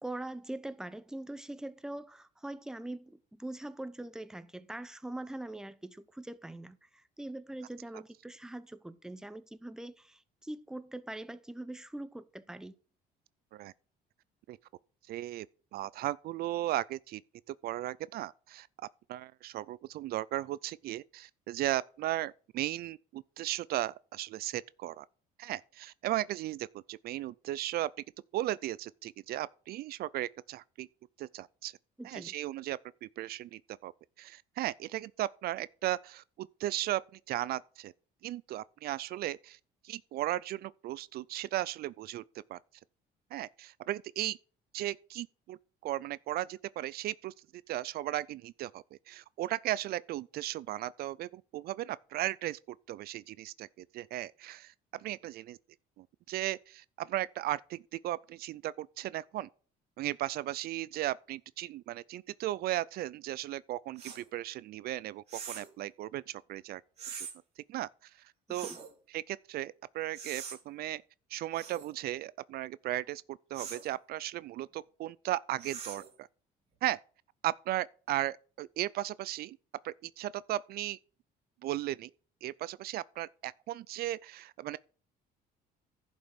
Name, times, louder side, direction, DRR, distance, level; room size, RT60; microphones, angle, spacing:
voice 1, 0.0-12.8 32.0-32.3 68.5-68.8, right 1 dB, 5° right, 0.7 m, -43 dB
voice 2, 15.1-15.5 15.7-17.2 17.5-25.1 25.4-27.9 28.3-30.9 31.2-31.7 32.0-33.9 34.2-37.0 37.3-37.9 38.2-39.6 39.8-42.2 42.5-42.6 43.3-44.4 44.7-45.6 45.8-47.3 47.7-53.7 53.9-55.6 56.0-59.5 60.0-66.8 67.1-67.3 67.7-68.7 69.1-71.0 71.3-76.3 76.8-77.0 77.4-79.6 79.8-81.0 81.6-82.1 82.4-84.8, right 15 dB, 65° right, 0.4 m, -36 dB
sound 1, 64.0-64.2 65.3-65.7 67.0-67.3 68.5-68.9 70.1-70.6 71.5-71.9 73.5-73.9 75.6-76.1, right 6 dB, 40° right, 3.5 m, -43 dB
11.0 x 5.3 x 6.1 m
cardioid pair, 110°, 17 cm